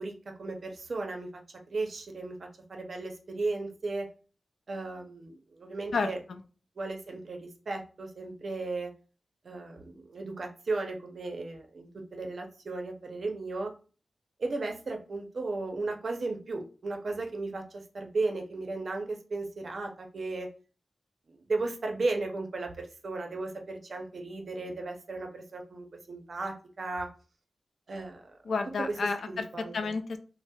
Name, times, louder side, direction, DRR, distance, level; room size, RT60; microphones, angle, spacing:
voice 1, 0.0-1.4 1.7-4.1 4.7-6.2 6.8-8.9 9.4-13.7 14.4-20.5 21.3-27.1 27.9-28.3 29.3-29.9, right 3 dB, 60° right, 3 dB, 0.6 m, -35 dB
voice 2, 5.9-6.4 28.5-29.5 29.7-30.2, left 4 dB, 80° left, 8 dB, 0.3 m, -31 dB
4.1 x 2.0 x 2.2 m, 0.37 s
wide cardioid pair, 115°, 0 cm